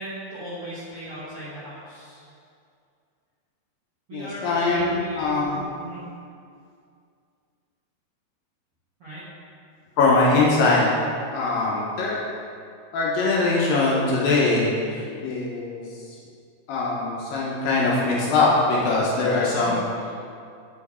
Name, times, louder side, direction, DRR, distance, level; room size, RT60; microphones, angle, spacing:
voice 1, 0.0-2.2 4.1-5.4 5.8-6.0 9.0-9.2 19.5-19.7, right 1 dB, 75° right, -11 dB, 1.3 m, -36 dB
voice 2, 4.1-5.7 10.0-10.8 11.3-12.2 12.9-15.9 16.7-19.8, left 3 dB, 75° left, -5 dB, 2.2 m, -22 dB
9.1 x 4.4 x 4.3 m, 2.4 s
omnidirectional pair, 4.8 m